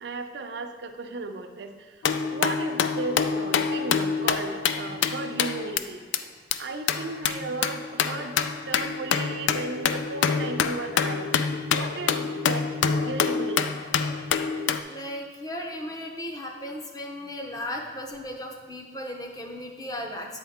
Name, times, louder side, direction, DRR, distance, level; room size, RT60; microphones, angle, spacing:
voice 1, 0.0-6.0 6.6-13.7, right 3 dB, 70° right, 6 dB, 0.5 m, -35 dB
sound 1, 2.0-5.8 6.1-6.2 6.5-6.6 6.9-14.8, left 6 dB, 85° left, 0.3 m, -26 dB
voice 2, 14.9-20.4, left 1 dB, 20° left, 2 dB, 0.6 m, -36 dB
8.8 x 4.5 x 3.5 m, 1.5 s
head